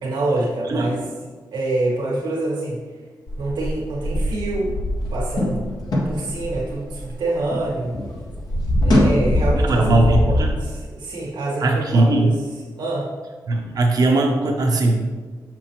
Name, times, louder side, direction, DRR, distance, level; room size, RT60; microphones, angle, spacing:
voice 1, 0.0-1.0 1.5-2.8 3.4-4.7 5.1-5.7 6.0-8.0 8.8-12.3 12.8-13.1, right 2 dB, 85° right, -4 dB, 1.5 m, -26 dB
sound 1, 3.3-7.7 7.9-10.5, left 1 dB, 65° left, 1.6 m, -22 dB
voice 2, 9.5-10.6 11.6-12.3 13.5-15.1, right 2 dB, 60° right, 1 dB, 0.9 m, -19 dB
6.3 x 6.1 x 3.0 m, 1.4 s
cardioid pair, 75°, 7 cm